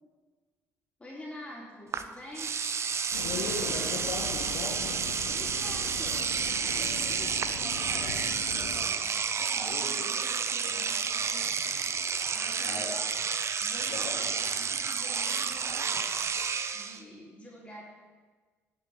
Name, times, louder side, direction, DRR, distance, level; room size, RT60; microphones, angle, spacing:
voice 1, 1.0-2.6 5.3-11.6 12.3-12.9 13.6-16.4 16.7-17.8, left 1 dB, 15° left, -4 dB, 3.2 m, -47 dB
Engine / Domestic sounds home sounds, 1.9-2.0 2.3-17.0, right 6 dB, 35° right, 0.7 m, -30 dB
sound 1, 3.1-8.9, left 5 dB, 70° left, 1.1 m, -41 dB
voice 2, 3.2-5.0 9.7-10.1 10.5-10.7 12.6-13.0 13.9-14.3, left 3 dB, 50° left, -3 dB, 1.9 m, -38 dB
18.5 x 8.4 x 3.5 m, 1.4 s
figure-of-eight pair, 50°, 8 cm